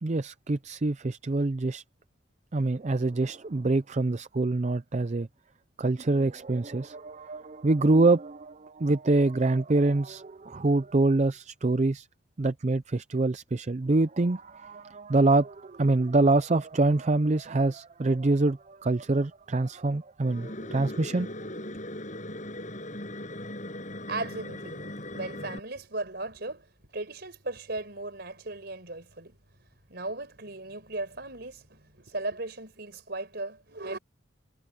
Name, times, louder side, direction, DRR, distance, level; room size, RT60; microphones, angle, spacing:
voice 1, 0.0-1.8 2.5-5.3 5.8-12.1 12.4-21.3, right 2 dB, 35° right, 0.5 m, -25 dB
sound 1, 20.2-25.6, left 1 dB, 40° left, 7.9 m, -39 dB
voice 2, 24.1-26.7 26.9-29.4 29.9-34.0, right 2 dB, 55° right, 5.3 m, -37 dB
head